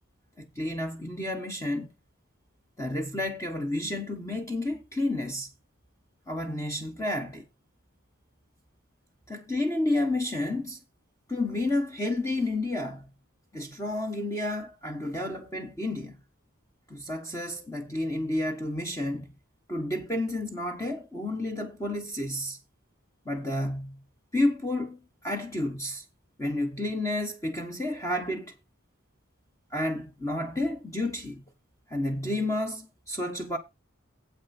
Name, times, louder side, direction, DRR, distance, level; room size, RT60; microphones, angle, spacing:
voice 1, 0.4-1.9 2.8-5.5 6.3-7.5 9.3-10.8 11.3-13.1 13.5-16.2 16.9-19.3 19.7-22.6 23.2-24.0 24.3-26.0 26.4-28.5 29.7-31.4 31.9-33.6, left 1 dB, 15° left, 1.2 m, -30 dB
9.4 x 8.1 x 4.2 m
head